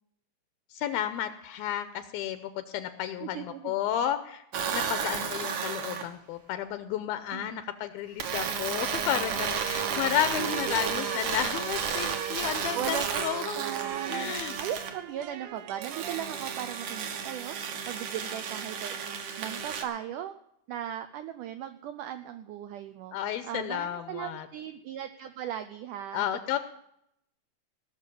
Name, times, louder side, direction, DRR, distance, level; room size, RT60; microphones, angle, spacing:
voice 1, 0.7-4.4 4.7-13.6 14.1-14.5 23.1-24.5 26.1-26.6, left 11 dB, 80° left, 11 dB, 2.4 m, -32 dB
voice 2, 3.2-3.7 7.3-7.6 10.4-10.8 12.7-13.2 13.5-17.6 17.9-19.0 19.4-20.3 20.7-23.2 23.4-26.3, right 10 dB, 90° right, 9 dB, 1.8 m, -37 dB
sound 1, 4.5-6.1 8.2-15.0 15.8-19.8, right 7 dB, 60° right, 2.3 m, -33 dB
sound 2, 8.8-16.1, right 13 dB, 75° right, 2.4 m, -41 dB
18.0 x 6.6 x 8.5 m, 0.74 s
omnidirectional pair, 4.6 m